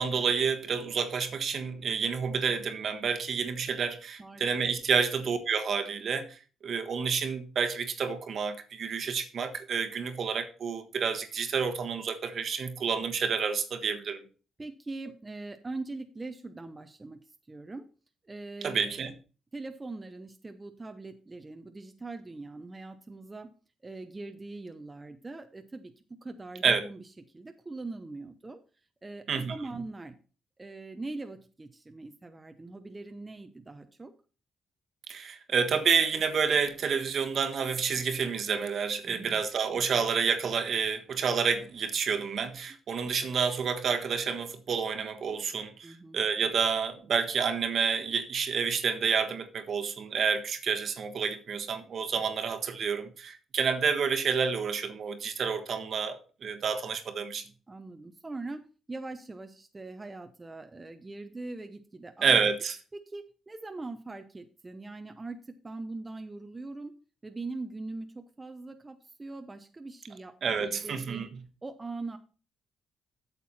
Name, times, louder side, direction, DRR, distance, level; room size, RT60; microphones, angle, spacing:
voice 1, 0.0-14.2 18.6-19.1 26.6-26.8 29.3-29.6 35.1-57.4 62.2-62.8 70.4-71.3, right 6 dB, 55° right, 1.4 m, -29 dB
voice 2, 14.6-17.2 17.5-17.8 18.3-19.0 19.5-23.5 23.8-25.9 26.2-27.0 27.3-28.6 29.0-30.2 30.6-34.1 39.0-39.4 45.8-46.2 57.7-58.6 58.9-62.3 62.9-66.9 67.2-71.3 71.6-72.2, right 3 dB, 20° right, 0.9 m, -41 dB
8.5 x 6.9 x 4.3 m
cardioid pair, 90°, 0 cm